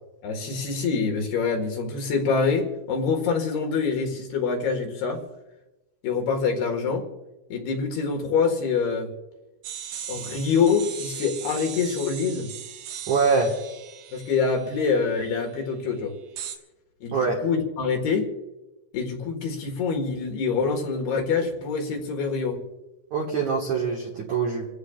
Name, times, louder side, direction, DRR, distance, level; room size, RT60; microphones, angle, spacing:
voice 1, 0.2-5.2 6.0-7.1 7.5-9.1 10.1-12.5 14.1-16.1 17.0-18.3 18.9-22.6, left 5 dB, 65° left, 2 dB, 3.3 m, -25 dB
sound 1, 9.6-15.3 16.4-16.6, right 9 dB, 90° right, 3.8 m, -38 dB
voice 2, 13.1-13.5 17.1-17.4 23.1-24.7, right 5 dB, 65° right, -2 dB, 1.9 m, -24 dB
27.5 x 15.5 x 2.4 m, 1.0 s
omnidirectional pair, 5.5 m